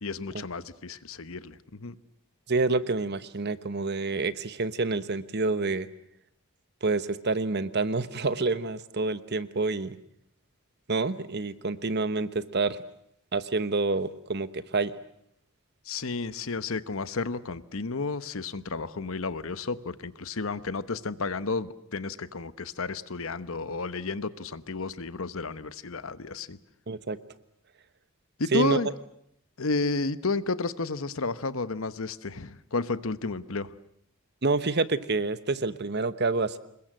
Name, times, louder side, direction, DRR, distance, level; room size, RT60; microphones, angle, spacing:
voice 1, 0.0-1.9 15.9-26.6 28.4-28.9 29.6-33.7, left 3 dB, 65° left, 14 dB, 1.0 m, -32 dB
voice 2, 2.5-5.9 6.8-10.0 10.9-12.8 13.3-14.9 26.9-27.2 28.5-28.8 34.4-36.6, right 3 dB, 50° right, 14 dB, 1.1 m, -28 dB
27.0 x 21.5 x 7.7 m, 0.71 s
head